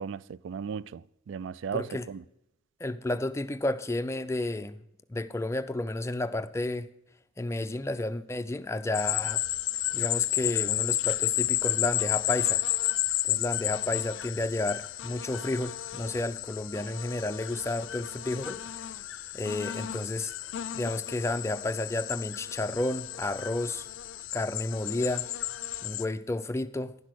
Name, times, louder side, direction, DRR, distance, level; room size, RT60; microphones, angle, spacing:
voice 1, 0.0-2.2, right 7 dB, 70° right, 0.3 m, -36 dB
voice 2, 1.7-2.1 2.8-4.8 5.1-6.9 7.4-9.4 9.9-12.6 13.2-18.9 19.3-20.3 20.7-23.9 24.3-25.3 25.8-27.0, left 2 dB, 15° left, 0.4 m, -31 dB
sound 1, 8.9-26.1, left 14 dB, 80° left, 0.4 m, -32 dB
11.0 x 6.1 x 6.3 m
head